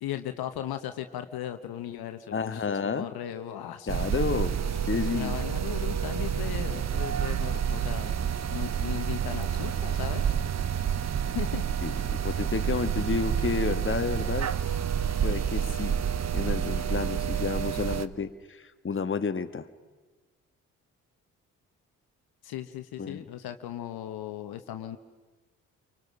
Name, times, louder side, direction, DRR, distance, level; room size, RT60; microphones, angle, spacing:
voice 1, 0.0-3.9 4.9-8.1 8.5-10.3 11.2-11.6 22.4-25.0, left 11 dB, 65° left, 8 dB, 1.2 m, -37 dB
voice 2, 2.3-3.1 3.9-5.4 11.8-14.5 15.2-16.0 16.3-19.7 23.0-23.2, left 5 dB, 30° left, 9 dB, 1.4 m, -31 dB
sound 1, 3.9-18.1, right 8 dB, 40° right, 0.9 m, -29 dB
28.5 x 24.5 x 6.2 m, 1.2 s
hypercardioid pair, 40°, 40 cm